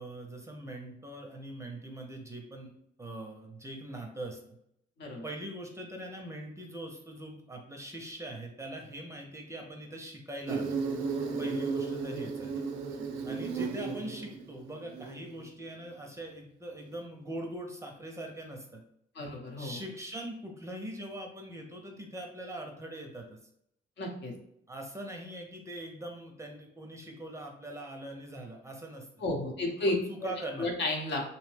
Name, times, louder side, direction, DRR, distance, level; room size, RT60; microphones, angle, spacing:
voice 1, 0.0-2.7 3.0-4.4 5.2-10.8 11.4-12.6 13.2-18.8 19.6-23.4 24.7-29.1 29.9-30.7, right 1 dB, 15° right, 2 dB, 0.5 m, -42 dB
Insect, 10.5-15.4, right 4 dB, 75° right, 0.4 m, -34 dB
voice 2, 19.1-19.8 24.0-24.3 29.2-29.9 30.2-30.3 30.6-31.3, left 2 dB, 60° left, 1 dB, 0.8 m, -32 dB
2.7 x 2.1 x 3.2 m, 0.74 s
cardioid pair, 90°, 20 cm